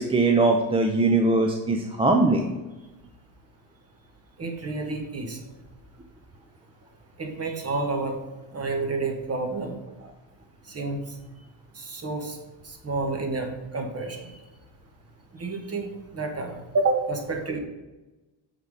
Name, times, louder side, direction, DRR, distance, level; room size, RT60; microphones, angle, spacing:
voice 1, 0.0-2.5, right 2 dB, 10° right, 3 dB, 0.5 m, -21 dB
voice 2, 4.4-5.4 7.2-8.2 8.5-10.1 10.7-11.0 11.7-12.4 12.6-14.4 15.3-17.6, right 3 dB, 30° right, 4 dB, 1.4 m, -29 dB
6.8 x 4.1 x 4.7 m, 1.1 s
cardioid pair, 100°, 49 cm